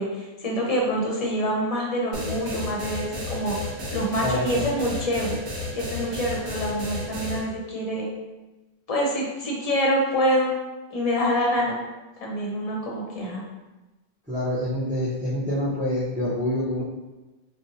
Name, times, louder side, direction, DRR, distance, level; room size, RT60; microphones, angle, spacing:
voice 1, 0.0-5.4 5.7-8.1 8.9-10.5 10.9-11.8 12.2-13.4, equal, 40° left, -3 dB, 0.7 m, -26 dB
sound 1, 2.1-7.4, left 2 dB, 70° right, 1.0 m, -32 dB
voice 2, 4.2-4.7 14.3-16.8, left 1 dB, 10° right, -10 dB, 0.5 m, -26 dB
2.6 x 2.1 x 4.0 m, 1.1 s
omnidirectional pair, 1.1 m